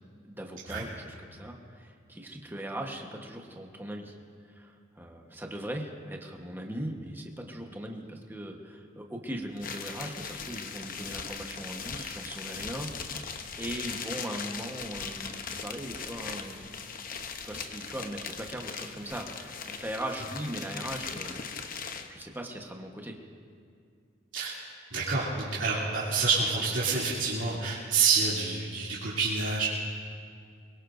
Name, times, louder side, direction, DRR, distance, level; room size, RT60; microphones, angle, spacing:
voice 1, 0.2-4.1 4.5-13.2 13.6-16.7 17.4-21.4 22.1-23.2, right 1 dB, 10° right, 2 dB, 1.2 m, -39 dB
sound 1, 9.6-22.2, left 6 dB, 45° left, 0.8 m, -39 dB
voice 2, 24.9-29.7, right 4 dB, 80° right, -8 dB, 2.8 m, -28 dB
23.0 x 21.5 x 2.6 m, 2.2 s
head